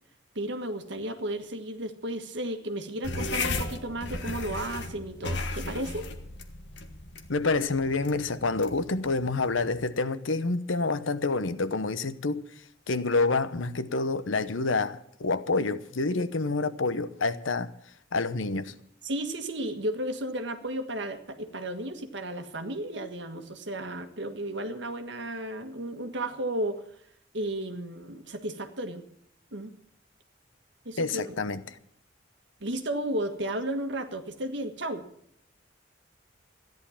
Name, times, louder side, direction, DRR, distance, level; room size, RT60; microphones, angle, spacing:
voice 1, 0.3-6.1 19.0-26.8 27.3-29.0 29.5-29.7 30.8-31.3 32.6-35.0, right 1 dB, 65° right, 1.6 m, -33 dB
sound 1, 3.0-9.9, left 3 dB, 60° left, 1.4 m, -35 dB
voice 2, 7.3-12.4 12.9-17.7 18.1-18.7 31.0-31.6, left 3 dB, 80° left, 0.9 m, -28 dB
14.0 x 11.0 x 7.2 m
head